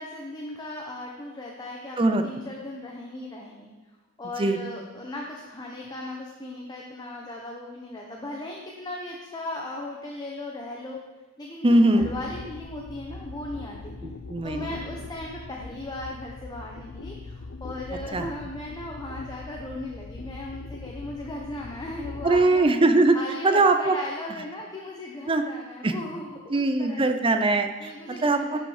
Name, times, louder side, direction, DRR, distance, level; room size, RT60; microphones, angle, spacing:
voice 1, 0.0-2.0 2.2-3.7 4.2-11.0 11.4-13.9 14.4-22.7 23.1-27.2 27.8-28.6, left 2 dB, 20° left, -1 dB, 0.9 m, -37 dB
voice 2, 11.6-12.0 14.3-14.7 18.1-18.3 22.2-23.2 23.4-24.0 25.3-25.4 25.8-25.9 26.5-27.9 28.2-28.6, right 2 dB, 25° right, 7 dB, 0.6 m, -21 dB
sound 1, 12.0-22.4, left 3 dB, 60° left, 0.5 m, -41 dB
12.0 x 5.4 x 4.9 m, 1.2 s
head